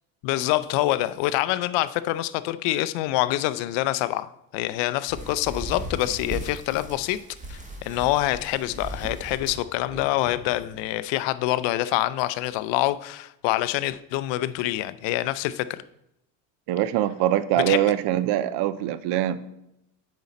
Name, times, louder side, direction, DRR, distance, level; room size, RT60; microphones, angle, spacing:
voice 1, 0.2-7.2 7.5-15.8 17.7-17.9, left 15 dB, 60° left, 0.6 m, -26 dB
sound 1, 5.1-10.8 11.2-11.4 12.0-12.1 12.5-12.6, right 1 dB, 15° right, 1.6 m, -38 dB
voice 2, 16.7-19.4, right 12 dB, 55° right, 0.7 m, -23 dB
8.0 x 5.3 x 4.2 m
supercardioid pair, 110°, 49 cm